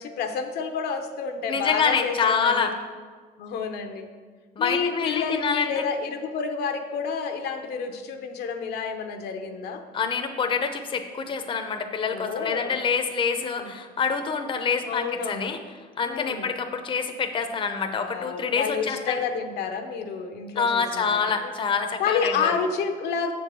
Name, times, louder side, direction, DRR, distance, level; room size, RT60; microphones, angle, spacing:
voice 1, 0.0-2.8 3.4-4.1 4.6-9.8 12.1-12.8 13.4-13.7 14.9-15.5 16.0-16.5 17.9-21.2 22.0-23.3, left 5 dB, 75° left, 6 dB, 0.8 m, -29 dB
voice 2, 1.5-2.7 4.6-5.7 9.9-15.6 16.0-19.2 20.5-22.5, left 5 dB, 30° left, 6 dB, 0.6 m, -26 dB
6.8 x 4.6 x 6.7 m, 1.5 s
cardioid pair, 110°, 17 cm